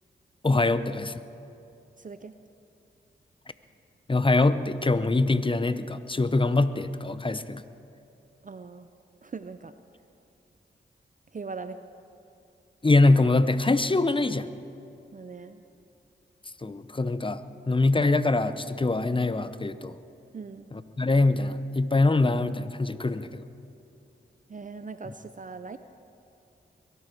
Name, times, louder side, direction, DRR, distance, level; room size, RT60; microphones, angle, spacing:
voice 1, 0.4-1.2 4.1-7.6 12.8-14.5 16.6-17.4 17.7-19.9 20.7-23.4, left 2 dB, 25° left, 13 dB, 0.8 m, -23 dB
voice 2, 2.0-2.3 8.4-8.9 9.2-9.7 11.3-11.8 15.1-15.6 20.3-20.7 24.5-25.8, right 4 dB, 40° right, 10 dB, 0.6 m, -40 dB
22.0 x 12.5 x 4.6 m, 2.8 s
cardioid pair, 45°, 21 cm